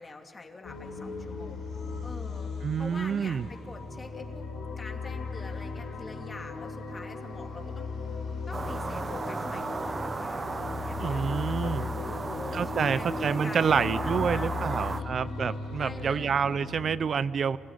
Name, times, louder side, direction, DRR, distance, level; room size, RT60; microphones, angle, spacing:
voice 1, 0.0-1.7 2.0-4.5 4.8-8.2 8.5-15.2 15.8-16.3, left 3 dB, 30° left, 3 dB, 2.7 m, -45 dB
sound 1, 0.6-16.8, left 4 dB, 80° left, 4.5 m, -37 dB
voice 2, 2.6-3.5 11.0-11.8 12.5-17.6, right 6 dB, 50° right, 16 dB, 0.5 m, -28 dB
sound 2, 8.5-15.0, right 3 dB, 30° right, 0.8 m, -35 dB
26.5 x 16.0 x 9.7 m, 2.7 s
cardioid pair, 90°, 0 cm